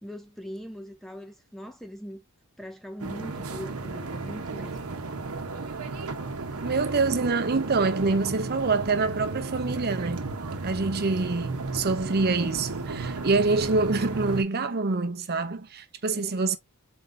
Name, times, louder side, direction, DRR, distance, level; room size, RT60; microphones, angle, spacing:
voice 1, 0.0-2.2 2.6-4.9 16.1-16.3, equal, ahead, 0.5 m, -41 dB
sound 1, 3.0-14.4, right 3 dB, 75° right, 0.9 m, -34 dB
voice 2, 6.6-10.2 10.6-16.6, right 3 dB, 45° right, 0.7 m, -26 dB
4.5 x 3.8 x 2.6 m
head